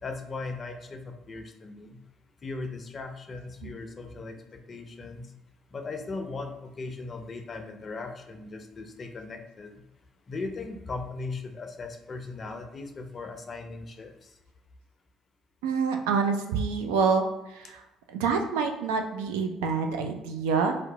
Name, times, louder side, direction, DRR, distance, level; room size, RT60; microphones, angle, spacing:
voice 1, 0.0-1.9 2.4-5.3 5.7-9.7 10.3-14.1, left 3 dB, 35° left, 5 dB, 0.4 m, -38 dB
voice 2, 15.6-17.3 17.5-17.8 18.1-20.8, right 5 dB, 70° right, 5 dB, 0.3 m, -27 dB
2.7 x 2.1 x 3.8 m, 0.93 s
figure-of-eight pair, 50°, 0 cm